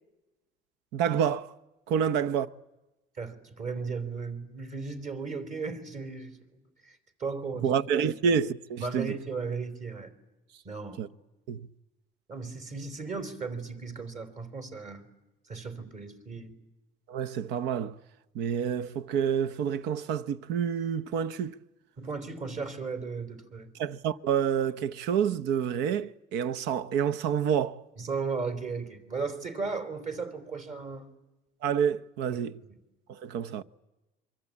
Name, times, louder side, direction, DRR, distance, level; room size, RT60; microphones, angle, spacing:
voice 1, 0.9-1.5 1.9-2.5 7.6-9.1 11.0-11.1 11.5-11.7 17.1-18.0 18.3-21.6 23.8-27.8 31.6-32.5 33.1-33.6, right 8 dB, 85° right, 0.9 m, -28 dB
voice 2, 3.2-6.3 6.8-7.7 8.8-10.1 10.6-11.0 12.3-15.1 15.5-16.6 22.0-23.7 28.0-31.1 32.3-32.4 32.7-32.8, right 4 dB, 45° right, 3.8 m, -36 dB
26.5 x 24.0 x 8.6 m
cardioid pair, 120°, 17 cm